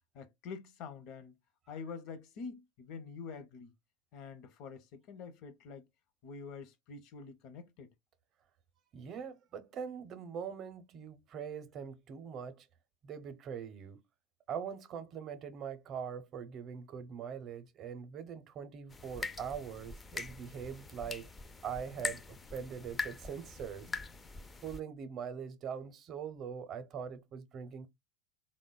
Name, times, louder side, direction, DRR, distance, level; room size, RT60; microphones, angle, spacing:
voice 1, 0.1-1.4 1.7-3.7 4.1-5.9 6.2-7.9, left 5 dB, 55° left, 0.7 m, -46 dB
voice 2, 8.9-12.7 13.0-14.0 14.5-21.3 21.6-23.9 24.6-27.9, right 7 dB, 45° right, 0.6 m, -42 dB
sound 1, 18.9-24.8, left 4 dB, 20° left, 0.3 m, -43 dB
3.5 x 2.1 x 2.2 m
hypercardioid pair, 95°, 0 cm